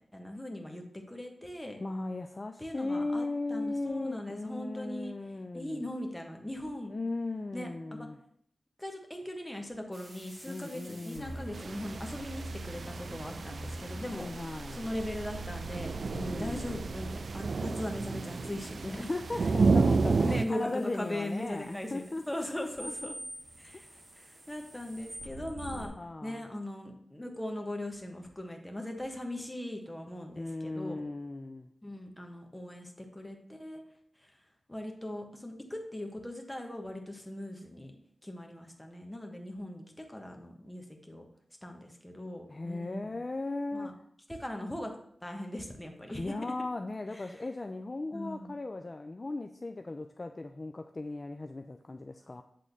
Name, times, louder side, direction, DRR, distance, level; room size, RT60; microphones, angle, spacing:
voice 1, 0.1-1.8 2.6-5.1 5.5-6.9 7.5-8.1 8.8-14.3 14.7-15.9 16.3-19.1 19.9-23.1 23.6-25.9 26.2-31.0 31.8-33.8 34.2-34.3 34.7-37.9 38.2-41.3 41.6-43.2 43.7-43.9 44.3-44.9 45.2-46.5 47.1-47.4 48.1-48.6, left 1 dB, 10° left, 3 dB, 1.4 m, -40 dB
voice 2, 1.8-5.9 6.9-8.2 10.5-11.4 14.1-14.9 16.1-16.8 18.8-23.1 23.7-23.8 25.7-26.5 30.4-31.7 42.5-44.0 46.2-52.4, left 2 dB, 35° left, 6 dB, 0.5 m, -37 dB
sound 1, 9.9-25.9, right 2 dB, 50° right, 2.4 m, -45 dB
sound 2, 11.5-20.4, right 4 dB, 65° right, 0.3 m, -31 dB
8.5 x 3.7 x 6.7 m, 0.68 s
wide cardioid pair, 80°, 0 cm